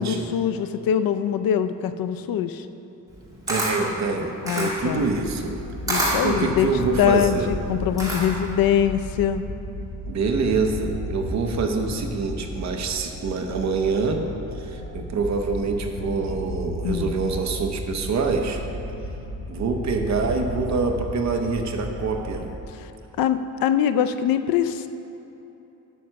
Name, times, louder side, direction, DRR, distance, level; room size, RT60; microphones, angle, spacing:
voice 1, 0.0-2.7 4.4-5.1 5.9-9.4 16.8-17.1 22.7-22.9 23.2-24.9, left 9 dB, 70° left, 10 dB, 0.5 m, -23 dB
Camera, 3.1-8.5, right 1 dB, 10° right, 2.0 m, -28 dB
voice 2, 3.5-5.6 6.2-7.5 10.1-14.2 14.6-18.6 19.5-22.5, right 4 dB, 50° right, 4 dB, 0.8 m, -25 dB
sound 1, 4.8-22.6, left 1 dB, 40° left, 1.9 m, -34 dB
9.2 x 6.4 x 5.8 m, 3.0 s
wide cardioid pair, 180°, 36 cm